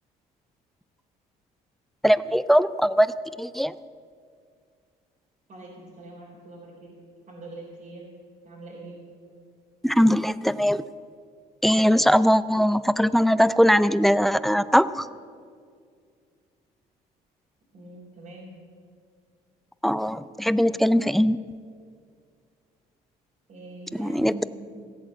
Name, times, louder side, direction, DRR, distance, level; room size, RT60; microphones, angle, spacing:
voice 1, 2.0-3.7 9.8-10.8 11.6-15.1 19.8-21.4 23.9-24.3, equal, ahead, 16 dB, 0.4 m, -21 dB
voice 2, 5.5-6.9 7.3-8.1 8.4-9.0 17.7-18.5 23.5-24.8, right 2 dB, 50° right, -6 dB, 3.8 m, -43 dB
16.0 x 8.6 x 7.7 m, 2.2 s
cardioid pair, 110°, 17 cm